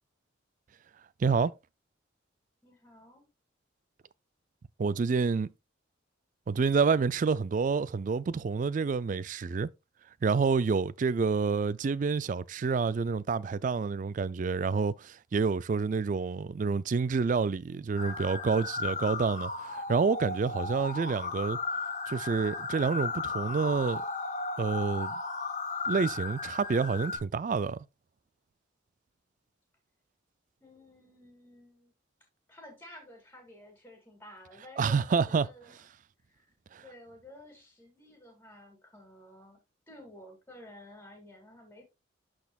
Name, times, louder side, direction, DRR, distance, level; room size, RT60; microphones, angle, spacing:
voice 1, 1.2-1.5 4.8-5.5 6.5-9.7 10.2-21.6 22.1-24.0 24.6-25.1 25.9-27.8 34.8-35.5 36.7-36.8, right 5 dB, 40° right, 0.3 m, -28 dB
voice 2, 2.6-3.2 30.6-31.9 32.5-35.8 36.3-36.5 36.8-39.6 39.9-41.8, left 1 dB, 10° left, 2.2 m, -52 dB
sound 1, 18.0-27.2, left 4 dB, 40° left, 1.5 m, -35 dB
12.5 x 4.2 x 2.3 m
head